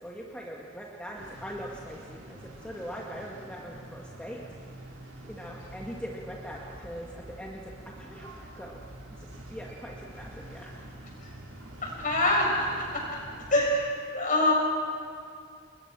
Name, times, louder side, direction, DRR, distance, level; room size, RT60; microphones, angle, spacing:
voice 1, 0.0-4.4 4.9-7.6 8.0-8.3 8.5-8.8 9.5-10.9, equal, 5° left, -3 dB, 1.9 m, -41 dB
sound 1, 1.1-13.7, right 1 dB, 90° right, 6.3 m, -46 dB
voice 2, 11.8-12.4 12.8-12.9 13.5-14.5, left 1 dB, 40° left, -1 dB, 7.3 m, -25 dB
30.0 x 21.5 x 6.2 m, 2.3 s
head